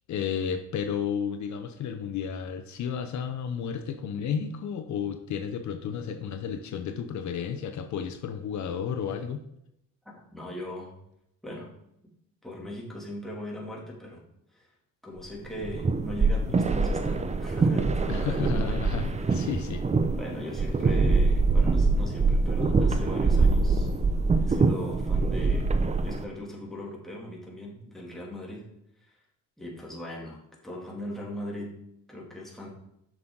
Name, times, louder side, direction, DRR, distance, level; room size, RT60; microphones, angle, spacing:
voice 1, 0.1-9.4 18.1-19.9, left 7 dB, 70° left, 7 dB, 0.7 m, -32 dB
voice 2, 10.3-10.9 11.4-11.7 12.4-14.2 14.5-14.7 15.0-18.8 19.1-19.3 20.2-23.9 24.4-25.7 26.0-28.6 29.6-31.7 32.1-32.7, left 1 dB, ahead, -3 dB, 2.6 m, -39 dB
sound 1, 15.5-26.2, right 3 dB, 20° right, 0.6 m, -24 dB
7.7 x 6.2 x 3.8 m, 0.80 s
cardioid pair, 90°, 30 cm